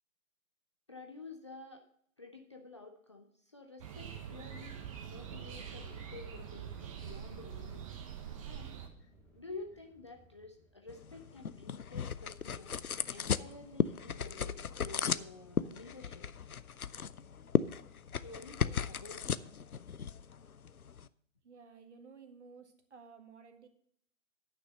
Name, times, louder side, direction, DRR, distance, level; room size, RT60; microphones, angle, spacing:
voice 1, 0.9-1.9 2.2-7.9 8.5-8.7 9.3-16.3 18.2-19.4, left 3 dB, 20° left, 3 dB, 0.5 m, -50 dB
sound 1, 3.8-8.9, right 8 dB, 25° right, 1.0 m, -44 dB
sound 2, 6.7-12.2, right 1 dB, 5° left, 0.9 m, -64 dB
sound 3, 10.9-21.1, left 7 dB, 85° left, 0.6 m, -36 dB
voice 2, 21.4-23.7, right 5 dB, 55° right, 6 dB, 1.8 m, -55 dB
10.0 x 6.0 x 6.5 m, 0.64 s
figure-of-eight pair, 135°, 42 cm